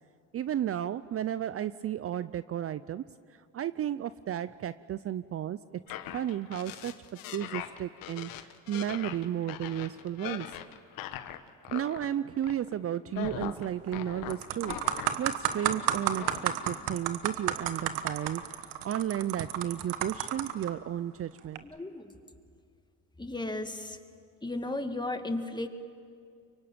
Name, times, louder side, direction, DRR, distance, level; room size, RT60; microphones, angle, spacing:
voice 1, 0.3-3.0 3.5-5.8 6.1-6.9 7.3-10.5 11.7-21.6, right 11 dB, 45° right, 15 dB, 0.6 m, -33 dB
sound 1, 5.9-12.1 12.4-12.8 13.1-16.5, left 12 dB, 80° left, 1.3 m, -41 dB
sound 2, 13.7-13.9 14.3-20.7 21.4-21.6, right 11 dB, 90° right, 1.3 m, -32 dB
voice 2, 21.6-22.2 23.2-24.0 24.4-25.7, left 2 dB, 15° left, 6 dB, 2.1 m, -35 dB
24.0 x 23.5 x 8.9 m, 2.3 s
supercardioid pair, 80°, 34 cm